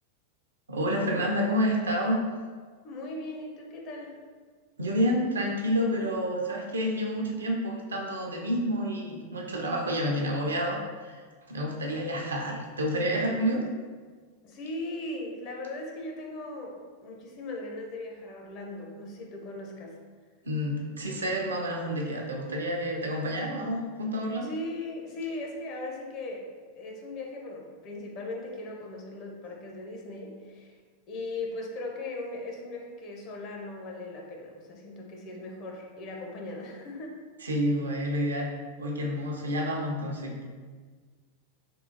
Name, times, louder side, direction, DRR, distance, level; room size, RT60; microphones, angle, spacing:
voice 1, 0.7-2.2 4.8-11.2 11.5-13.6 20.4-24.5 37.4-38.5 38.8-40.5, equal, 75° right, 0 dB, 0.5 m, -29 dB
voice 2, 2.8-4.2 14.4-16.8 17.0-20.0 24.4-26.5 26.7-30.7 31.1-37.2, left 2 dB, 40° left, 0 dB, 0.6 m, -38 dB
3.6 x 2.4 x 2.7 m, 1.5 s
figure-of-eight pair, 90°, 0 cm